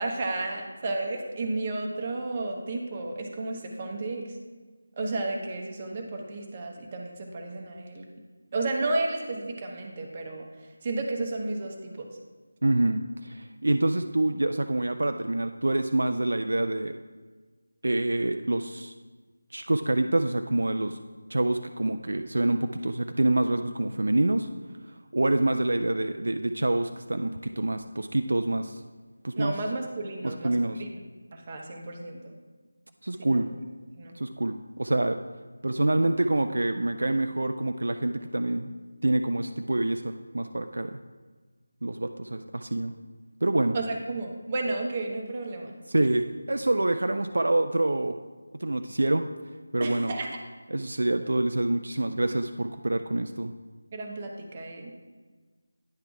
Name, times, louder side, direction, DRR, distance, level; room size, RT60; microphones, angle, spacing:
voice 1, 0.0-4.3 5.0-8.1 8.5-10.4 10.8-12.1 29.4-30.9 31.3-32.3 33.2-33.4 33.9-34.1 43.7-45.7 49.8-50.4 53.9-54.9, right 2 dB, 25° right, 1 dB, 0.8 m, -32 dB
voice 2, 12.6-17.0 17.8-18.9 19.5-21.0 21.3-24.5 25.1-28.8 29.2-29.6 30.2-30.8 33.0-33.5 34.2-35.2 35.6-38.7 39.0-41.0 41.8-42.9 43.4-43.8 45.9-48.2 48.6-49.2 49.7-50.1 50.7-53.5, right 2 dB, 65° right, 7 dB, 0.3 m, -26 dB
9.6 x 3.8 x 4.7 m, 1.4 s
figure-of-eight pair, 160°, 0 cm